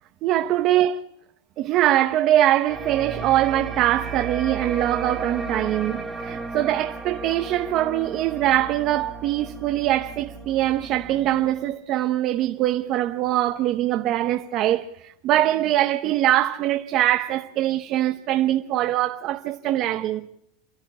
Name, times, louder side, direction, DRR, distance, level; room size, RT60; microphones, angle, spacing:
voice 1, 0.2-1.0 1.6-20.3, right 13 dB, 40° right, 0.9 m, -22 dB
sound 1, 2.7-11.7, right 4 dB, 10° right, 1.8 m, -35 dB
29.0 x 13.0 x 8.5 m
supercardioid pair, 155°, 0 cm